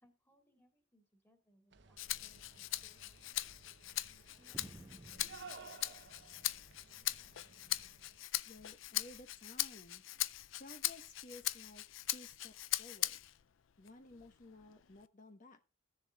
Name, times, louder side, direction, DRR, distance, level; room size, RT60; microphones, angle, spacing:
voice 1, 0.0-3.2 4.4-6.0, equal, 10° left, 4 dB, 2.5 m, -72 dB
sound 1, 1.7-8.2, right 4 dB, 65° right, 0.9 m, -57 dB
Rattle (instrument), 2.0-13.4 13.9-15.1, left 15 dB, 85° left, 0.5 m, -41 dB
sound 2, 4.5-6.8 7.1-8.1 8.9-9.3 10.3-10.5, right 1 dB, 15° right, 0.4 m, -58 dB
voice 2, 8.5-10.0 10.6-11.8 12.1-13.2 13.8-15.6, left 2 dB, 45° left, 6 dB, 1.2 m, -55 dB
15.5 x 7.1 x 2.4 m, 0.31 s
head